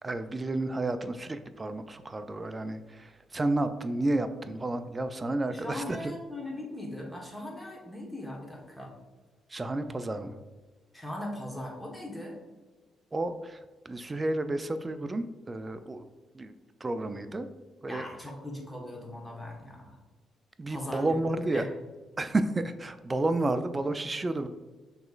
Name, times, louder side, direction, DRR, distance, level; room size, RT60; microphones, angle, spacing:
voice 1, 0.0-6.1 9.5-10.4 13.1-13.6 13.9-16.1 16.3-16.6 16.8-17.5 17.8-18.0 20.6-21.7 22.2-24.5, right 2 dB, 25° right, 9 dB, 0.3 m, -31 dB
voice 2, 5.5-8.9 10.9-12.4 17.9-20.0 20.7-21.2 21.4-21.6, left 1 dB, 5° left, -1 dB, 1.1 m, -39 dB
6.1 x 2.9 x 2.4 m, 1.3 s
cardioid pair, 90°, 0 cm